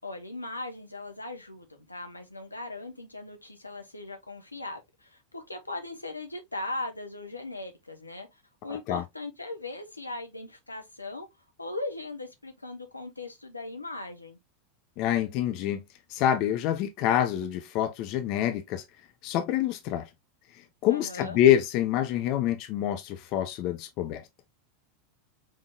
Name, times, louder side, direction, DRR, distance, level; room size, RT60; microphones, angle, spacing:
voice 1, 0.0-8.3 8.6-11.3 11.6-14.4 20.9-21.4, left 2 dB, 90° left, 1.0 m, -39 dB
voice 2, 15.0-15.8 16.1-18.8 19.2-20.1 20.8-24.2, left 11 dB, 45° left, 0.7 m, -26 dB
5.3 x 3.6 x 2.3 m
figure-of-eight pair, 85°, 0 cm